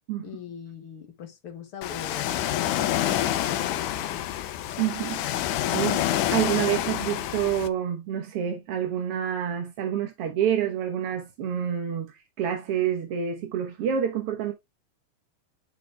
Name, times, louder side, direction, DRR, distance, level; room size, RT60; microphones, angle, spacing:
voice 1, 0.2-4.3, left 8 dB, 55° left, 1.8 m, -42 dB
Ocean, 1.8-7.7, left 12 dB, 85° left, 2.2 m, -27 dB
voice 2, 4.8-14.5, right 9 dB, 60° right, 1.8 m, -28 dB
10.5 x 4.6 x 3.4 m
omnidirectional pair, 3.5 m